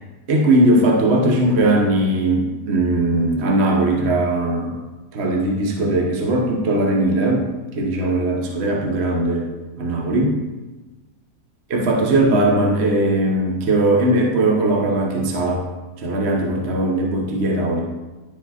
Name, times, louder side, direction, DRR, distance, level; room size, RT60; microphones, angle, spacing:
voice 1, 0.3-4.8 5.1-7.4 7.7-9.5 9.8-10.4 11.7-15.6 16.0-17.8, right 1 dB, 45° right, 0 dB, 1.0 m, -19 dB
10.5 x 4.8 x 4.1 m, 1.2 s
omnidirectional pair, 1.7 m